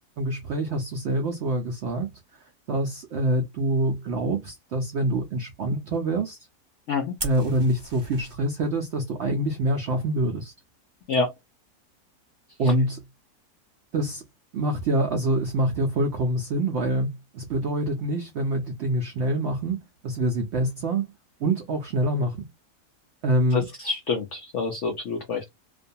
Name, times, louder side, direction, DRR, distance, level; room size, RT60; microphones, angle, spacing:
voice 1, 0.2-2.1 2.7-6.4 7.2-10.5 12.6-13.0 13.9-14.2 14.5-19.8 20.0-21.1 21.4-22.5 23.2-23.7, right 1 dB, 75° right, 0.6 m, -25 dB
Fire, 7.2-8.3, right 2 dB, 25° right, 0.5 m, -36 dB
voice 2, 23.5-25.6, left 4 dB, 70° left, 0.7 m, -27 dB
2.5 x 2.2 x 2.6 m
omnidirectional pair, 1.7 m